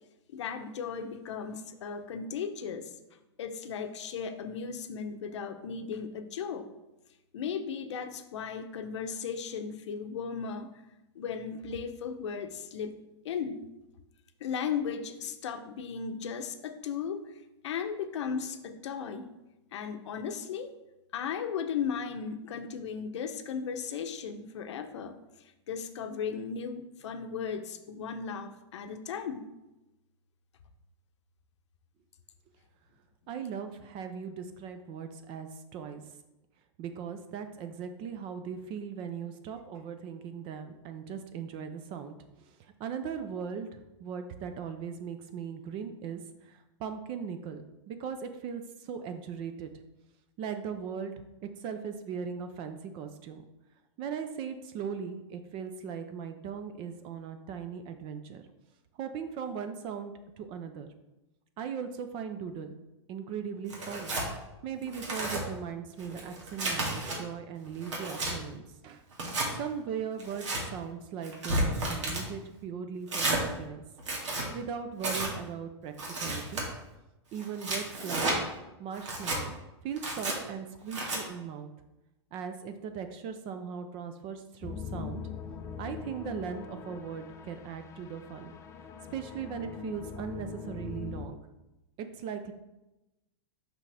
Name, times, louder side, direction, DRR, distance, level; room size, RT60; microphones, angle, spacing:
voice 1, 0.3-2.9 3.4-6.7 7.3-10.7 11.1-12.9 13.2-13.7 14.4-17.3 17.6-19.3 19.7-20.7 21.1-25.2 25.7-29.5, left 6 dB, 75° left, 8 dB, 0.8 m, -36 dB
voice 2, 33.3-36.0 36.8-49.7 50.4-51.1 51.4-53.4 54.0-58.4 59.0-60.9 61.6-62.8 63.1-64.1 64.6-69.0 69.6-73.8 74.5-76.6 77.3-78.3 78.8-79.6 79.8-81.7 82.3-85.2 85.8-88.5 89.1-91.4 92.0-92.5, right 7 dB, 35° right, 8 dB, 0.5 m, -39 dB
Tearing, 63.7-64.3 64.8-65.4 66.0-67.2 67.6-68.3 69.1-69.5 70.2-70.6 71.2-72.2 73.1-73.4 74.0-74.5 75.0-75.3 76.0-76.6 77.4-78.4 79.0-79.4 80.0-80.4 80.9-81.2, right 2 dB, 90° right, 2.1 m, -32 dB
sound 1, 84.6-91.3, left 6 dB, 20° left, 0.5 m, -42 dB
6.0 x 5.6 x 3.4 m, 0.97 s
hypercardioid pair, 135°, 15 cm